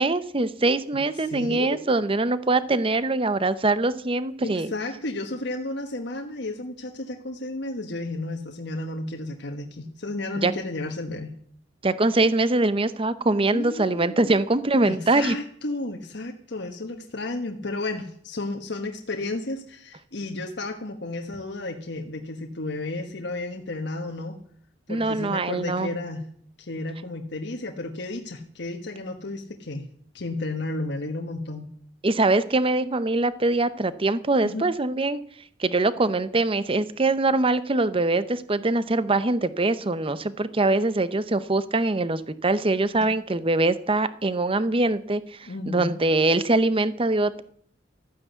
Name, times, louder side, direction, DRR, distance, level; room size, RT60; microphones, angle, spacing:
voice 1, 0.0-4.7 10.4-10.5 11.8-15.3 24.9-26.0 32.0-35.2 35.6-45.2 45.7-47.4, right 2 dB, 30° right, 14 dB, 0.8 m, -23 dB
voice 2, 0.9-1.8 4.4-11.3 13.5-14.4 14.8-24.4 24.9-26.3 26.6-29.9 30.1-31.7 34.4-34.7 43.0-43.1 45.5-45.9, left 2 dB, 65° left, 3 dB, 1.3 m, -33 dB
13.5 x 9.5 x 8.1 m, 0.62 s
head